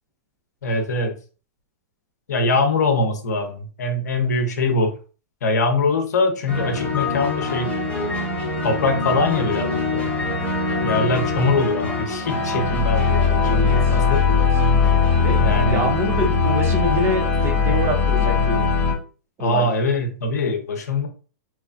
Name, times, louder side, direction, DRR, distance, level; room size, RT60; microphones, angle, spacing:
voice 1, 0.6-1.2 2.3-4.9 5.4-7.7 8.6-10.1 10.8-14.2 15.4-15.8 19.4-21.1, left 3 dB, 80° left, 4 dB, 0.7 m, -22 dB
sound 1, 6.5-18.9, left 4 dB, 15° left, 1.3 m, -21 dB
voice 2, 13.5-14.4 15.2-18.7 19.4-19.7, equal, 25° right, 2 dB, 0.9 m, -26 dB
2.9 x 2.2 x 2.5 m, 0.37 s
hypercardioid pair, 125°, 9 cm